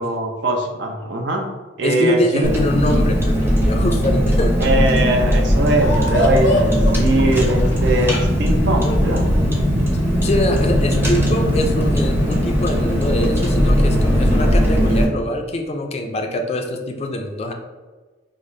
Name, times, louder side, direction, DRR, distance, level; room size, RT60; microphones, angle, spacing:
voice 1, 0.0-1.5 1.8-2.5 4.6-9.2, right 1 dB, 70° right, 1 dB, 0.6 m, -21 dB
voice 2, 1.8-4.6 9.9-17.5, left 1 dB, 35° left, 4 dB, 0.4 m, -23 dB
Car, 2.4-15.1, equal, 15° right, 0.6 m, -18 dB
sound 1, 5.8-12.2, left 1 dB, 80° left, 0.6 m, -28 dB
4.9 x 2.0 x 2.6 m, 1.3 s
head